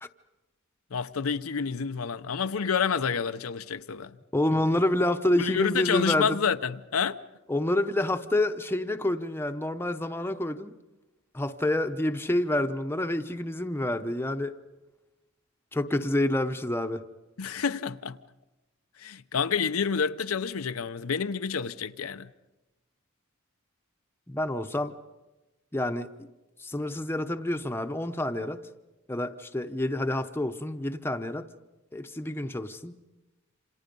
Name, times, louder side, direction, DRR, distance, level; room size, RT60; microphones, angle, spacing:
voice 1, 0.9-4.2 4.5-4.6 5.4-7.2 17.4-18.2 19.0-22.3, left 6 dB, 90° left, 0.7 m, -29 dB
voice 2, 4.3-6.4 7.5-10.7 11.3-14.5 15.7-17.0 24.3-24.9 25.7-26.3 26.6-28.6 29.1-31.4 31.9-33.0, left 1 dB, 10° left, 0.9 m, -28 dB
28.0 x 27.0 x 5.3 m
head